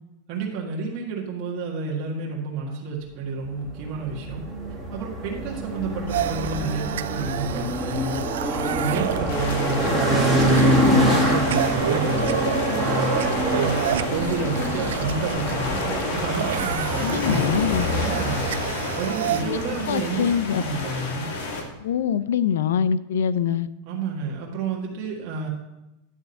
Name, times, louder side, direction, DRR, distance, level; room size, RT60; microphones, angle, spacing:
voice 1, 0.3-4.4 4.9-8.2 8.6-12.3 12.8-17.2 18.0-18.5 19.0-21.3 23.9-25.5, right 4 dB, 45° right, -3 dB, 1.6 m, -30 dB
sound 1, 3.6-21.1, equal, ahead, 1.9 m, -26 dB
sound 2, 6.1-19.4, right 11 dB, 85° right, 0.3 m, -30 dB
sound 3, 9.3-21.6, left 3 dB, 70° left, 1.7 m, -30 dB
voice 2, 17.0-17.9 19.4-19.6 19.9-20.6 21.8-23.7, left 8 dB, 85° left, 15 dB, 0.4 m, -24 dB
10.0 x 3.6 x 6.8 m, 0.95 s
supercardioid pair, 150°, 0 cm